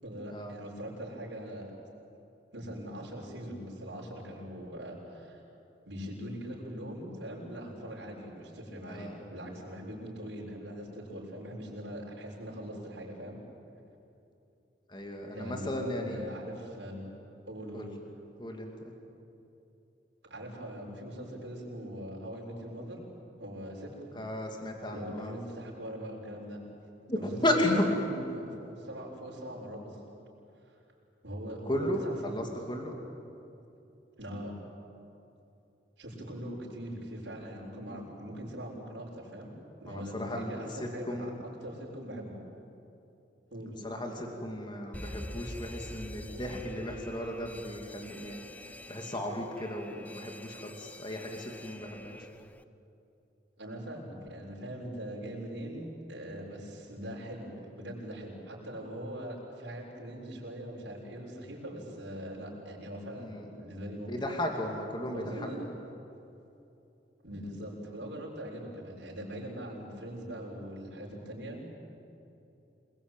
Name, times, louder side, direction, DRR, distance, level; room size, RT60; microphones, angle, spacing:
voice 1, 0.0-1.7 2.5-5.4 5.8-13.4 15.2-17.1 17.5-18.0 20.3-23.1 23.4-24.2 24.9-26.6 27.1-27.6 28.0-30.0 30.6-30.8 31.2-32.5 34.2-34.6 36.0-39.5 39.8-42.4 43.5-43.8 53.6-64.3 65.1-65.7 67.2-71.7, equal, 70° right, -3 dB, 6.8 m, -41 dB
voice 2, 8.8-9.3 14.9-16.4 17.7-17.9 18.4-18.9 24.1-25.4 27.1-27.9 31.6-32.9 39.9-41.4 43.8-52.3 63.2-63.6 64.1-65.7, left 1 dB, 25° left, 2 dB, 2.6 m, -34 dB
Alarm, 44.9-52.6, left 1 dB, 10° left, 0.5 m, -46 dB
28.0 x 21.0 x 9.1 m, 2.8 s
head